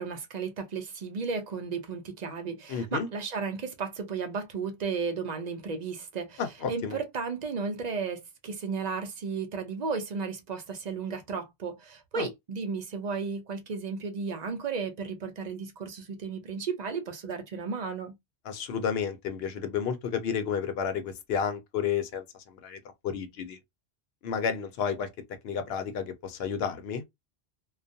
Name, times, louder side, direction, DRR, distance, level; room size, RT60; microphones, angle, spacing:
voice 1, 0.0-6.4 6.7-18.2, right 5 dB, 50° right, 0.6 m, -34 dB
voice 2, 2.7-3.1 6.4-7.0 12.2-12.3 18.5-23.6 24.2-25.1 25.4-27.0, left 7 dB, 75° left, 0.8 m, -31 dB
2.3 x 2.1 x 2.6 m
omnidirectional pair, 1.1 m